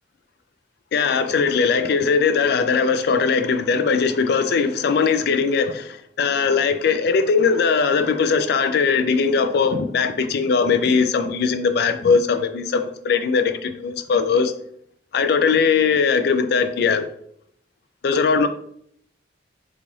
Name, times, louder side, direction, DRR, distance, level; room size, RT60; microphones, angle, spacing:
voice 1, 0.9-14.5 15.1-17.1 18.0-18.5, left 5 dB, 55° left, 0.3 m, -20 dB
3.9 x 2.4 x 3.1 m
head